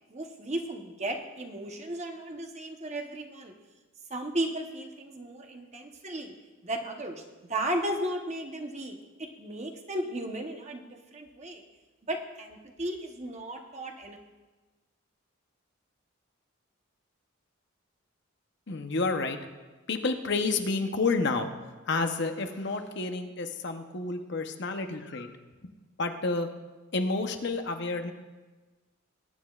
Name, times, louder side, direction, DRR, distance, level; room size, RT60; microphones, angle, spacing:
voice 1, 0.1-3.5 4.1-6.3 6.6-7.2 7.5-10.8 11.1-11.6 12.0-14.2, right 1 dB, 30° right, 4 dB, 1.0 m, -35 dB
voice 2, 18.7-19.4 19.9-21.5 21.9-25.3 26.0-26.5 26.9-28.1, left 3 dB, 55° left, 6 dB, 0.8 m, -29 dB
20.5 x 9.9 x 2.4 m, 1.2 s
head